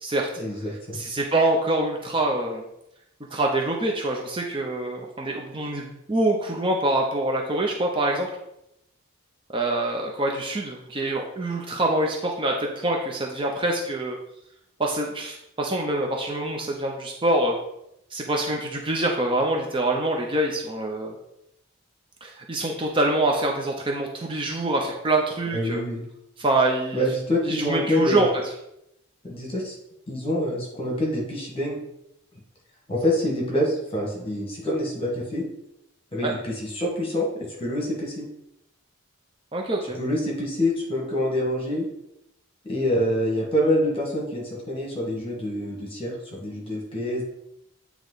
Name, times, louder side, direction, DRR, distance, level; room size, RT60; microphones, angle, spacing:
voice 1, 0.4-1.0 25.5-26.0 26.9-28.3 29.2-29.8 30.1-31.8 32.9-35.4 36.1-38.3 39.9-41.9 42.6-47.2, equal, 25° left, -2 dB, 1.6 m, -26 dB
voice 2, 0.9-2.6 3.3-8.4 9.5-14.2 14.8-17.6 18.1-21.1 22.2-25.8 26.4-27.0 27.5-28.3 36.2-36.3 39.5-40.0, right 2 dB, 25° right, 0 dB, 0.6 m, -25 dB
8.7 x 3.0 x 3.9 m, 0.81 s
head